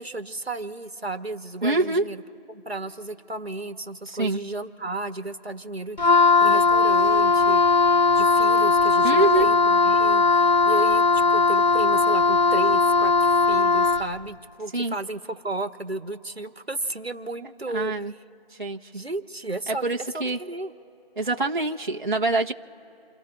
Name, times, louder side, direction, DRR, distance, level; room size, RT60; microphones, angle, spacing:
voice 1, 0.0-2.2 2.5-7.6 8.0-18.2 18.9-19.8 20.1-20.7, right 2 dB, 85° right, 7 dB, 1.6 m, -33 dB
voice 2, 1.6-2.0 4.1-4.4 9.0-9.5 14.7-15.0 17.7-18.1 18.6-18.8 19.8-20.4 21.2-22.5, right 2 dB, 55° right, 0 dB, 1.3 m, -24 dB
Wind instrument woodwind instrument, 6.0-14.1, left 4 dB, 50° left, 0.5 m, -19 dB
29.5 x 18.0 x 2.6 m, 2.8 s
figure-of-eight pair, 165°, 30 cm